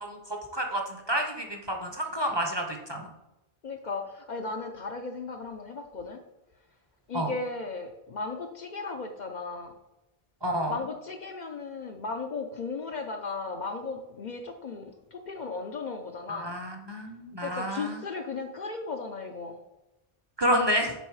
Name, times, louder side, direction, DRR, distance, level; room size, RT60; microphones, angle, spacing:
voice 1, 0.0-3.1 7.1-7.3 10.4-10.8 16.3-18.0 20.4-20.9, equal, 30° right, 2 dB, 0.7 m, -29 dB
voice 2, 3.6-6.2 7.1-9.7 10.7-16.6 17.4-19.6, left 4 dB, 55° left, 5 dB, 0.6 m, -36 dB
6.9 x 3.9 x 4.7 m, 0.98 s
omnidirectional pair, 1.1 m